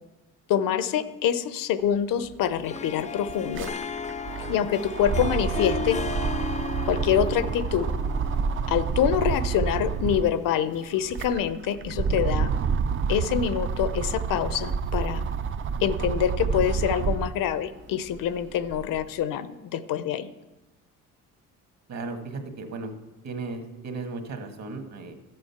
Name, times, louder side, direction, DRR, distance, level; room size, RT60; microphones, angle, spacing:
voice 1, 0.5-3.7 4.5-6.0 6.9-7.9 8.7-12.5 13.1-15.2 15.8-20.3, left 9 dB, 75° left, 13 dB, 0.8 m, -26 dB
sound 1, 2.3-2.4 2.6-10.4 10.9-17.4 17.9-19.1, right 6 dB, 40° right, 0.5 m, -29 dB
Harp, 2.6-10.9, left 5 dB, 25° left, 0.3 m, -36 dB
voice 2, 21.9-22.9 23.2-25.1, right 3 dB, 55° right, 5 dB, 1.7 m, -35 dB
13.0 x 7.7 x 5.8 m, 1.1 s
cardioid pair, 130°, 33 cm